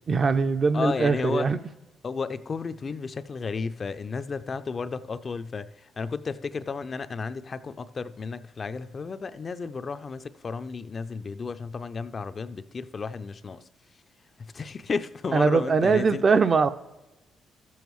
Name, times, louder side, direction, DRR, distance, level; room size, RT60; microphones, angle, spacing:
voice 1, 0.1-1.6 15.3-16.7, right 4 dB, 40° right, 0.4 m, -21 dB
voice 2, 0.7-1.5 2.0-13.6 14.5-16.2, left 4 dB, 40° left, 0.3 m, -33 dB
13.5 x 7.1 x 3.1 m
cardioid pair, 90°, 0 cm